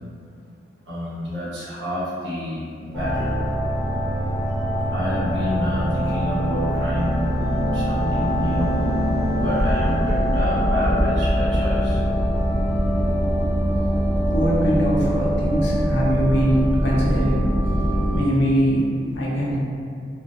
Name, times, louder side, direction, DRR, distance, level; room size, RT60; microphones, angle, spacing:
voice 1, 0.9-3.4 4.9-7.2 7.7-9.0 9.3-12.0, left 1 dB, 80° right, -10 dB, 0.9 m, -28 dB
sound 1, 2.9-18.2, equal, 15° left, 0.3 m, -22 dB
voice 2, 14.3-17.5 18.1-18.9 19.1-19.6, equal, 80° left, -5 dB, 0.6 m, -21 dB
2.3 x 2.1 x 2.6 m, 2.4 s
head